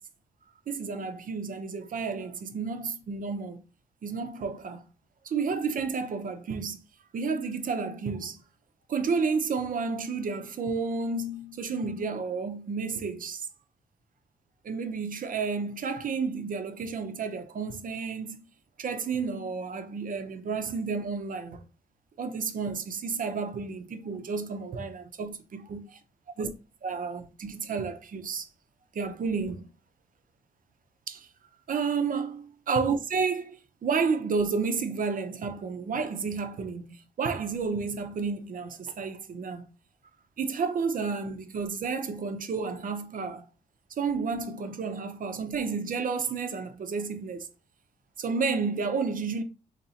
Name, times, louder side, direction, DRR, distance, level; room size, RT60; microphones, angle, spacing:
voice 1, 0.7-3.6 4.0-4.8 5.2-6.8 7.1-8.4 8.9-13.5 14.6-18.4 18.8-21.6 22.2-25.4 25.7-25.8 26.4-26.5 26.8-28.5 28.9-29.7 31.1-31.3 31.7-39.6 40.4-43.4 44.0-47.5 48.2-49.4, right 5 dB, 60° right, 0.7 m, -31 dB
2.9 x 2.8 x 4.0 m
cardioid pair, 65°, 16 cm